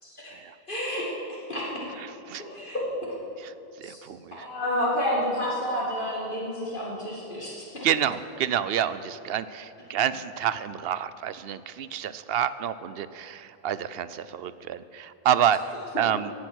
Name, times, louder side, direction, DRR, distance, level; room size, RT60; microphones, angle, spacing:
voice 1, 0.0-0.4 0.7-1.8 2.4-2.8 3.8-4.0 4.3-7.7, equal, 55° left, -6 dB, 2.4 m, -30 dB
voice 2, 3.8-4.4 7.8-16.3, right 9 dB, 70° right, 15 dB, 0.8 m, -28 dB
17.0 x 10.5 x 6.3 m, 2.7 s
omnidirectional pair, 1.1 m